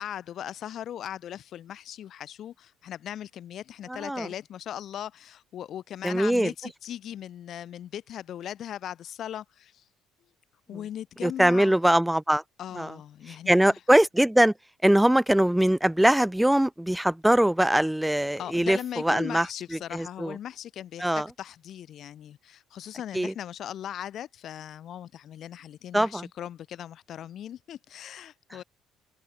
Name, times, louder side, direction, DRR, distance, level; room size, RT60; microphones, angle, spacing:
voice 1, 0.0-9.8 10.7-11.8 12.6-13.7 18.4-28.6, left 10 dB, 55° left, 2.2 m, -39 dB
voice 2, 3.9-4.3 6.0-6.5 11.2-12.4 12.7-12.9 13.5-14.5 14.8-20.4 21.0-21.3 23.1-23.3 25.9-26.3, right 1 dB, 5° right, 1.5 m, -22 dB
hypercardioid pair, 55°, 0 cm